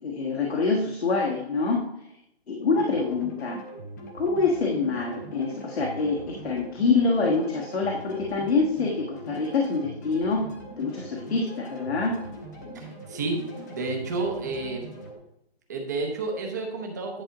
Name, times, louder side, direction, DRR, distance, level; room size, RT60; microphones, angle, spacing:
voice 1, 0.0-1.8 2.5-3.6 4.1-10.5 10.8-12.2, left 4 dB, 70° left, -1 dB, 1.5 m, -25 dB
sound 1, 2.8-15.1, right 1 dB, 15° left, 0.8 m, -42 dB
voice 2, 12.7-13.4 13.7-14.9 15.7-17.2, right 3 dB, 15° right, 1 dB, 0.7 m, -30 dB
10.0 x 4.9 x 3.9 m, 0.79 s
hypercardioid pair, 170°, 32 cm